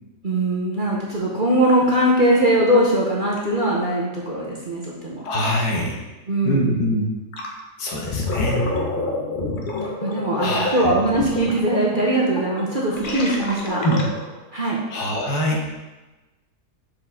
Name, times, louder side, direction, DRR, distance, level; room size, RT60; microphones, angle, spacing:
voice 1, 0.2-5.2 6.3-6.8 10.0-13.9 14.5-14.8, right 1 dB, 40° right, -4 dB, 0.8 m, -21 dB
voice 2, 5.2-5.9 6.4-7.1 7.8-8.7 10.4-10.9 13.8-14.0 14.9-15.7, equal, 80° left, -1 dB, 1.7 m, -23 dB
Gurgling, 7.3-7.6 7.9-14.4, left 2 dB, 45° left, 0.8 m, -28 dB
6.3 x 4.9 x 3.7 m, 1.1 s
omnidirectional pair, 1.7 m